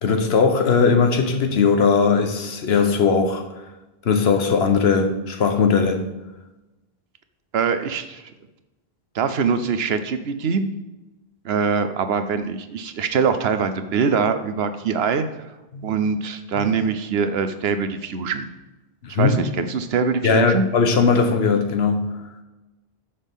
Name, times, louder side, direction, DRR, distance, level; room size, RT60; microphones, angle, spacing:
voice 1, 0.0-3.6 4.0-6.0 15.7-15.9 16.5-16.7 19.1-19.4 20.2-22.1, left 5 dB, 85° left, 6 dB, 1.2 m, -19 dB
voice 2, 7.5-8.2 9.1-10.7 11.4-15.5 15.8-18.4 19.2-20.6, right 5 dB, 80° right, 10 dB, 1.0 m, -23 dB
9.6 x 6.7 x 3.6 m, 1.1 s
omnidirectional pair, 1.0 m